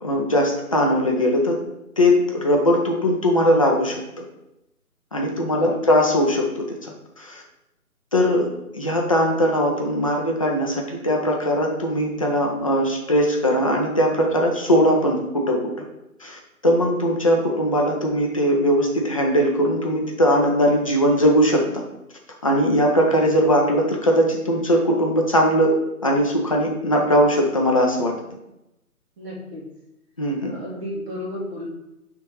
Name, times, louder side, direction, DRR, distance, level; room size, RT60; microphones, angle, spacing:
voice 1, 0.0-1.6 2.0-4.2 5.1-7.4 8.1-8.5 8.7-15.6 16.2-21.7 22.4-25.8 26.0-28.1 30.2-30.5, equal, 25° left, 0 dB, 0.5 m, -20 dB
voice 2, 5.3-5.9 29.2-29.6 30.4-31.7, left 1 dB, 45° right, -5 dB, 2.3 m, -33 dB
6.2 x 3.5 x 4.6 m, 0.89 s
figure-of-eight pair, 150°, 45 cm